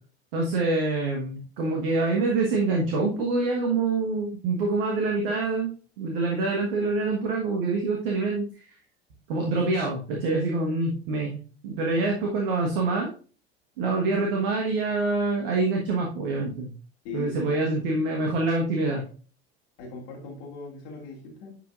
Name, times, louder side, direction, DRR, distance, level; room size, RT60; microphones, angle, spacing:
voice 1, 0.3-5.7 6.0-8.6 9.3-11.3 11.6-13.1 13.8-16.7 17.1-19.0, right 3 dB, 60° right, 1 dB, 1.4 m, -26 dB
voice 2, 17.0-17.6 19.8-21.6, left 4 dB, 55° left, -2 dB, 2.4 m, -40 dB
10.0 x 5.0 x 2.5 m, 0.39 s
figure-of-eight pair, 70°, 32 cm